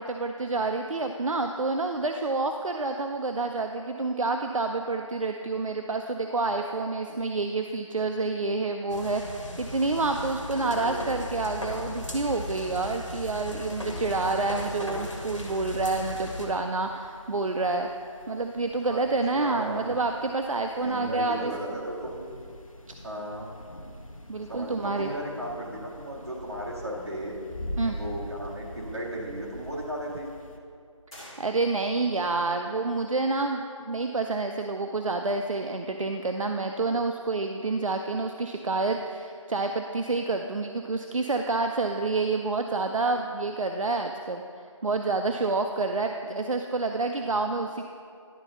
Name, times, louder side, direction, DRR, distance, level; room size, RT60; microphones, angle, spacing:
voice 1, 0.0-17.9 18.3-21.8 22.9-23.0 24.3-25.1 27.8-28.0 31.4-44.4 44.8-47.8, right 3 dB, 80° right, 4 dB, 0.5 m, -28 dB
sound 1, 8.9-16.5, left 1 dB, 65° left, 1.8 m, -37 dB
voice 2, 10.5-11.1 18.9-19.0 19.3-19.9 20.8-22.2 23.0-23.5 24.5-27.4 27.8-30.3, right 1 dB, 50° right, -6 dB, 2.1 m, -35 dB
sound 2, 11.7-30.6, equal, 85° left, 1.0 m, -45 dB
sound 3, 31.1-32.1, equal, 10° left, 1.8 m, -48 dB
11.0 x 4.0 x 5.6 m, 2.3 s
figure-of-eight pair, 175°, 17 cm